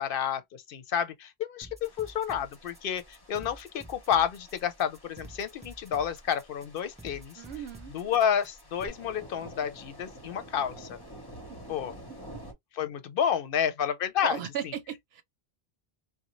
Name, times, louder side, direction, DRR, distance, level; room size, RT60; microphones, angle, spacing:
voice 1, 0.0-7.4 7.9-11.0 11.7-11.9 12.8-14.4, left 8 dB, 65° left, 0.8 m, -30 dB
sound 1, 1.6-8.9, right 1 dB, 10° right, 0.4 m, -49 dB
sound 2, 1.8-12.5, equal, 25° left, 0.8 m, -50 dB
voice 2, 7.4-7.9 11.4-11.6 12.3-12.4 14.2-15.2, right 9 dB, 80° right, 0.8 m, -37 dB
2.5 x 2.1 x 3.0 m
omnidirectional pair, 1.1 m